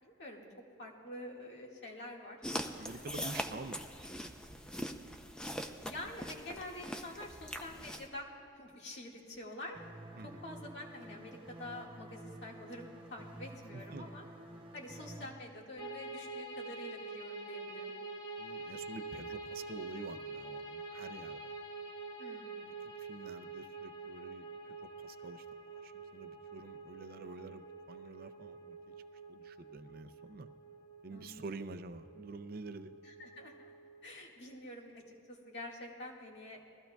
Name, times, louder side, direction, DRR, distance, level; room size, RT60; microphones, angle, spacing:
voice 1, 0.0-0.5 0.8-2.4 2.7-3.0 5.8-8.3 8.5-9.8 10.2-14.2 14.7-17.9 22.2-22.7 31.1-31.5 33.0-33.7 34.0-36.6, left 1 dB, 60° left, -2 dB, 1.9 m, -47 dB
sound 1, 2.4-8.1, equal, 5° left, 0.5 m, -42 dB
voice 2, 2.7-3.8 4.1-4.3 10.2-10.4 13.7-14.1 18.4-21.5 22.6-28.9 29.3-30.5 31.0-32.9, right 3 dB, 50° right, 10 dB, 0.5 m, -48 dB
sound 2, 9.7-15.3, right 1 dB, 25° right, 1.0 m, -50 dB
sound 3, 15.8-34.0, right 3 dB, 20° left, 1.0 m, -46 dB
21.0 x 15.0 x 2.3 m, 2.7 s
head